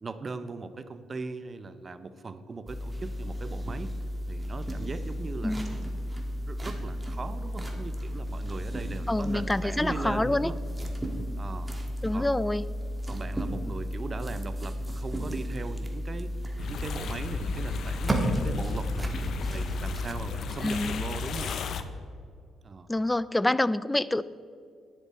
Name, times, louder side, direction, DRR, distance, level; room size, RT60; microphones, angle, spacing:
voice 1, 0.0-3.9 4.3-6.1 6.5-10.6 11.4-11.7 12.1-12.3 13.1-16.3 16.6-19.2 19.5-21.5 22.6-22.9, right 3 dB, 35° right, 12 dB, 0.7 m, -39 dB
sound 1, 2.7-20.1, equal, 15° right, 1.5 m, -33 dB
voice 2, 9.1-10.5 12.0-12.6 20.6-21.0 22.9-24.2, left 1 dB, 10° left, 18 dB, 0.3 m, -27 dB
sound 2, 16.6-21.8, left 5 dB, 65° left, 0.7 m, -34 dB
10.5 x 10.0 x 4.3 m, 2.3 s
cardioid pair, 90°, 0 cm